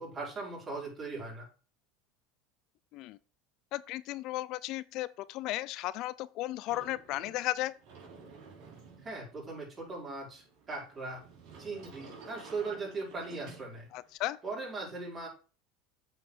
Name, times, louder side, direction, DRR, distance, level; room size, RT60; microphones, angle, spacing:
voice 1, 0.0-1.5 9.0-11.2 11.6-13.9 14.4-15.3, right 3 dB, 30° right, 5.0 m, -39 dB
voice 2, 3.7-7.7 13.9-14.4, left 16 dB, 55° left, 0.4 m, -35 dB
Sliding door, 6.7-14.2, right 4 dB, 60° right, 3.8 m, -53 dB
8.1 x 5.2 x 5.0 m
supercardioid pair, 105°, 0 cm